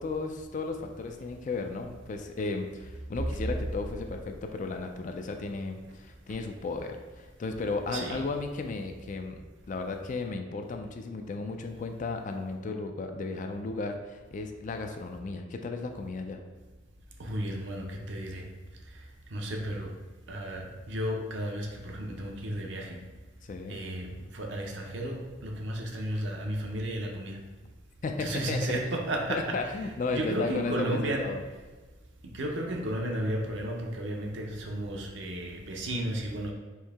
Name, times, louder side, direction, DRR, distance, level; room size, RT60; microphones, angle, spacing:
voice 1, 0.0-9.4 9.7-16.4 23.4-23.8 28.0-28.6 29.3-31.4, left 3 dB, 40° left, 5 dB, 0.3 m, -34 dB
voice 2, 17.2-18.4 19.3-19.9 20.3-22.9 23.7-24.1 24.3-27.4 28.2-29.6 30.1-31.3 32.3-36.5, right 1 dB, 65° right, 1 dB, 0.7 m, -33 dB
4.5 x 2.7 x 3.5 m, 1.3 s
head